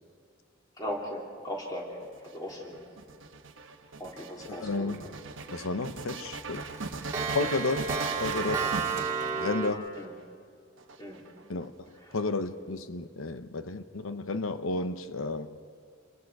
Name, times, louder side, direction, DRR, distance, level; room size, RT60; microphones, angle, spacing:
voice 1, 0.8-2.8 4.0-5.1 9.9-10.1 11.0-11.2 12.0-12.1, equal, 20° left, -2 dB, 3.3 m, -38 dB
sound 1, 2.0-10.0 10.8-11.6, right 3 dB, 70° right, 1.2 m, -39 dB
voice 2, 4.5-5.0 5.5-6.6 7.3-7.9 8.2-8.7 9.4-10.0 11.5-11.7 12.1-15.6, left 3 dB, 85° left, 10 dB, 0.9 m, -32 dB
Clock, 4.9-5.4 5.8-5.9 6.2-9.7, right 5 dB, 15° right, 2.5 m, -32 dB
28.5 x 21.5 x 4.8 m, 2.3 s
head